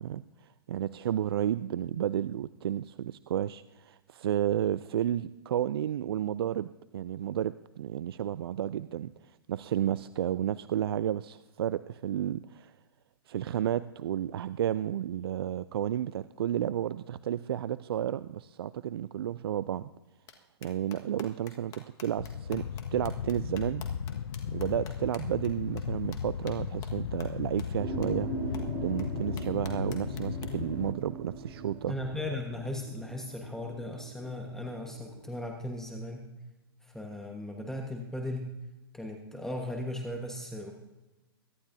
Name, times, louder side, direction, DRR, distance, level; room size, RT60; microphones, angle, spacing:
voice 1, 0.0-12.7 13.3-19.9 20.6-23.8 24.5-31.9, right 10 dB, 70° right, 16 dB, 0.4 m, -32 dB
sound 1, 20.3-20.4 20.6-25.5 25.8-25.9 26.1-26.2 26.5-26.6 26.8-26.9 27.2-27.3 27.6-27.7 28.0-28.1 28.5-28.6 29.0-29.1 29.4-30.5, left 9 dB, 30° left, 1.5 m, -48 dB
sound 2, 22.2-30.9, left 8 dB, 80° left, 0.5 m, -36 dB
sound 3, 27.8-35.3, right 3 dB, 45° right, 3.9 m, -40 dB
voice 2, 31.9-36.2 36.8-38.5 38.9-40.7, left 1 dB, 5° left, 2 dB, 1.3 m, -37 dB
23.0 x 11.5 x 2.7 m, 1.1 s
hypercardioid pair, 120°, 13 cm